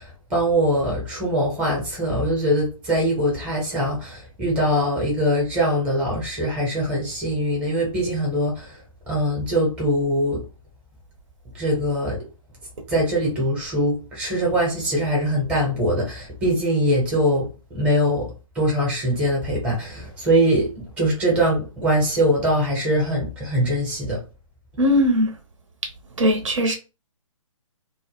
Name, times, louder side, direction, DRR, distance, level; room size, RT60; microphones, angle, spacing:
voice 1, 0.0-8.8 9.1-10.4 11.5-12.2 12.9-17.5 17.7-24.2, equal, 5° right, 0.7 m, -22 dB
voice 2, 24.8-25.3 26.2-26.8, equal, 65° right, 0.7 m, -19 dB
2.1 x 2.0 x 3.0 m
hypercardioid pair, 145°, 17 cm